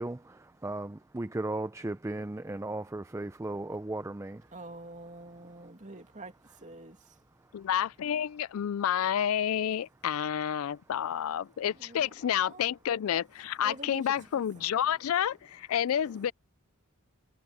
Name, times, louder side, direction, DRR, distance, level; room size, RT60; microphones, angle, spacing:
voice 1, 0.0-4.4, right 2 dB, 15° right, 0.4 m, -36 dB
voice 2, 4.5-6.3 6.6-7.2 11.8-12.6 13.6-14.7, right 2 dB, 35° right, 2.5 m, -47 dB
voice 3, 7.5-16.3, left 9 dB, 75° left, 0.4 m, -29 dB
head